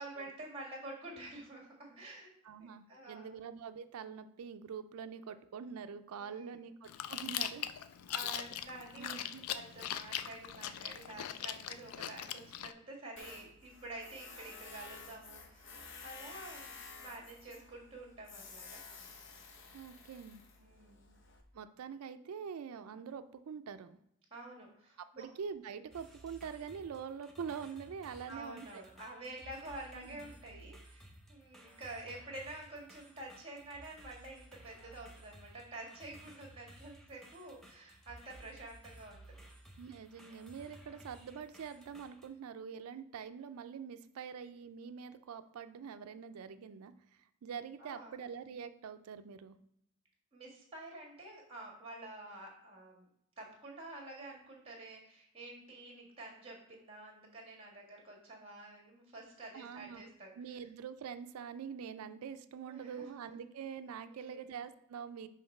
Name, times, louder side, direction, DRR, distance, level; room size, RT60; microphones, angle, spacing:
voice 1, 0.0-2.3 2.6-3.4 6.2-6.6 8.1-9.1 9.5-18.8 20.6-21.2 24.3-25.3 28.3-39.2 47.8-48.2 50.3-53.0 53.4-60.6 62.6-63.3 64.1-64.5, right 2 dB, 25° right, -1 dB, 1.5 m, -49 dB
voice 2, 2.4-7.7 8.2-8.3 9.0-9.4 19.7-20.4 21.5-24.0 25.2-28.8 29.9-30.2 39.8-46.9 47.4-49.6 59.5-60.0 60.4-65.3, right 7 dB, 85° right, 10 dB, 0.4 m, -45 dB
Chewing mastication, 6.9-12.7, left 10 dB, 90° left, 0.3 m, -41 dB
Tools, 13.2-21.4, left 4 dB, 55° left, 0.8 m, -52 dB
sound 1, 25.9-42.3, right 1 dB, ahead, 0.6 m, -57 dB
5.8 x 3.1 x 5.3 m, 0.75 s
head